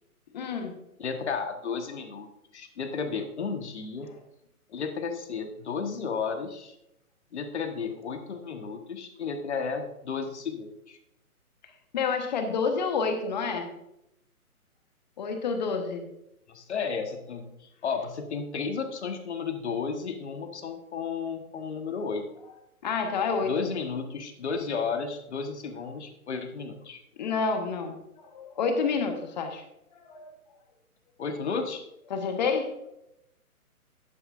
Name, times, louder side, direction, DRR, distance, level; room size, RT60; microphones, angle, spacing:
voice 1, 0.3-0.7 11.9-13.7 15.2-16.1 22.8-23.7 27.2-28.0 28.3-29.6 29.9-30.3 32.1-32.7, left 5 dB, 30° left, 6 dB, 1.2 m, -28 dB
voice 2, 1.0-2.3 2.5-4.1 4.7-6.8 7.3-11.0 16.5-22.3 23.4-27.0 31.2-31.8, left 5 dB, 50° left, 6 dB, 1.4 m, -33 dB
11.0 x 9.2 x 2.5 m, 0.83 s
figure-of-eight pair, 135°, 44 cm